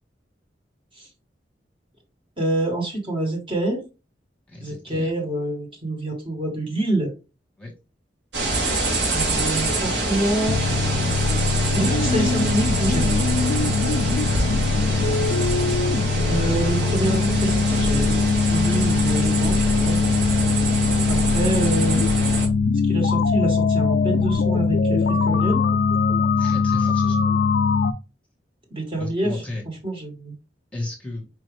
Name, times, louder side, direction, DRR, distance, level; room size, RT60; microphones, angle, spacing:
voice 1, 2.4-3.8 4.6-7.1 9.1-10.6 11.7-13.7 16.3-18.2 18.5-20.0 21.1-22.4 22.8-25.6 28.7-29.4 29.8-30.3, right 1 dB, 30° right, 1 dB, 1.4 m, -27 dB
voice 2, 4.5-5.1 7.6-7.7 14.2-15.1 26.4-27.3 28.9-29.6 30.7-31.3, left 2 dB, 5° left, -2 dB, 1.3 m, -34 dB
sound 1, 8.3-22.5, right 2 dB, 80° right, 1.6 m, -26 dB
sound 2, 10.5-27.9, left 4 dB, 60° left, 0.4 m, -21 dB
4.8 x 2.7 x 3.2 m, 0.30 s
head